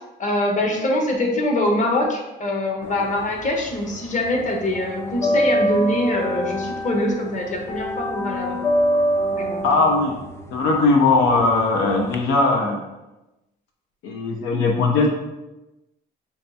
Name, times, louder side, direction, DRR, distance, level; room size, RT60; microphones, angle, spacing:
voice 1, 0.2-8.6 9.3-9.8, left 1 dB, 40° left, 1 dB, 0.9 m, -23 dB
sound 1, 2.9-4.0 4.2-12.2, equal, 15° left, 0.3 m, -25 dB
voice 2, 9.6-10.2 10.5-12.8 14.0-15.1, left 3 dB, 85° left, 0 dB, 0.6 m, -19 dB
5.3 x 2.3 x 2.7 m, 1.0 s
cardioid pair, 90°, 20 cm